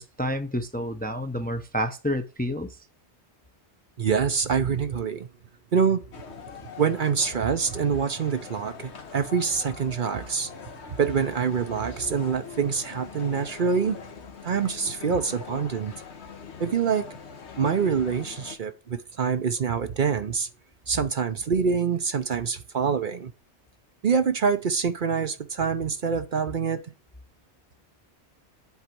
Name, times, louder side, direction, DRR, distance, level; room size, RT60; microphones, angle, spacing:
voice 1, 0.0-2.7, equal, 10° left, 0.6 m, -29 dB
voice 2, 4.0-5.3 5.7-6.0 6.8-10.5 11.0-14.0 14.4-15.9 16.6-17.1 17.6-20.5 20.9-23.3 24.0-26.8, right 6 dB, 50° right, 0.8 m, -25 dB
sound 1, 6.1-18.6, left 6 dB, 75° left, 1.4 m, -42 dB
8.2 x 4.0 x 6.0 m
omnidirectional pair, 1.1 m